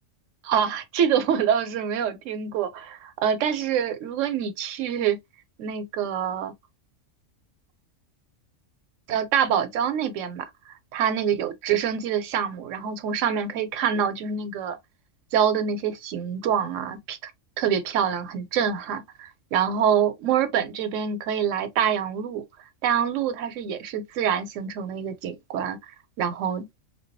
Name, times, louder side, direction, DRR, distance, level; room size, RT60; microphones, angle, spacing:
voice 1, 0.4-5.2 5.6-6.5 9.1-10.5 10.9-14.8 15.3-17.3 17.6-22.4 22.8-25.8 26.2-26.6, right 8 dB, 85° right, 0.9 m, -25 dB
2.3 x 2.2 x 2.5 m
omnidirectional pair, 1.3 m